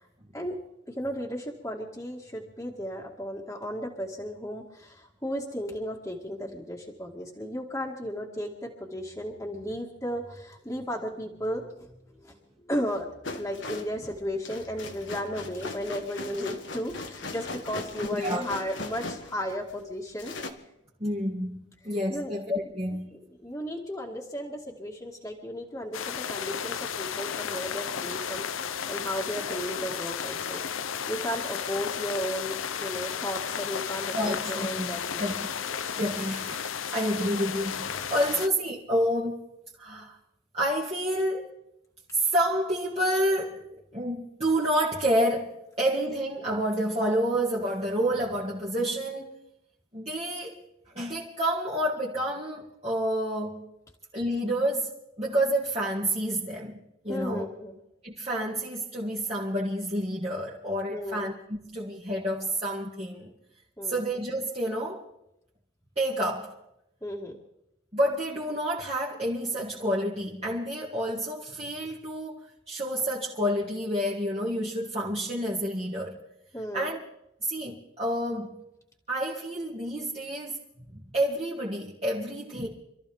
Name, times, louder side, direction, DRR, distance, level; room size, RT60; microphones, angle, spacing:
voice 1, 0.9-11.9 12.2-20.3 22.1-22.3 23.1-30.6 31.1-35.3 38.3-38.4 57.1-57.8 60.9-61.3 63.8-64.1 67.0-67.4 76.5-76.9, equal, 15° left, 1.9 m, -35 dB
sound 1, 13.2-19.8 20.2-20.5, left 3 dB, 65° left, 1.6 m, -39 dB
voice 2, 18.1-18.4 21.0-23.2 34.1-34.9 35.2-35.5 36.0-39.4 39.8-40.2 40.5-41.5 42.1-49.3 49.9-50.6 50.9-53.7 54.1-57.4 58.0-63.3 63.9-65.0 66.0-66.6 67.9-76.2 76.7-77.0 77.4-78.6 79.1-80.6 80.9-82.7, equal, 30° right, 2.0 m, -29 dB
sound 2, 25.9-38.5, left 7 dB, 85° left, 0.7 m, -33 dB
27.0 x 14.0 x 3.5 m
head